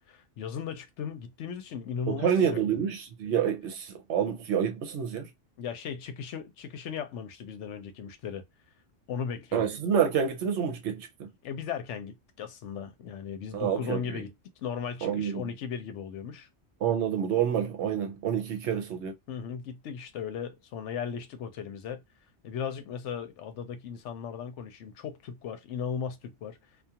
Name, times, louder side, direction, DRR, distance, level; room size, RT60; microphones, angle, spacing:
voice 1, 0.1-2.6 5.6-8.4 9.1-9.7 11.4-14.3 14.6-16.5 19.3-22.0 22.4-26.6, left 7 dB, 70° left, 0.9 m, -37 dB
voice 2, 2.1-5.3 9.5-11.3 13.5-14.2 15.0-15.5 16.8-19.1, right 8 dB, 70° right, 0.9 m, -28 dB
2.4 x 2.4 x 2.8 m
omnidirectional pair, 1.3 m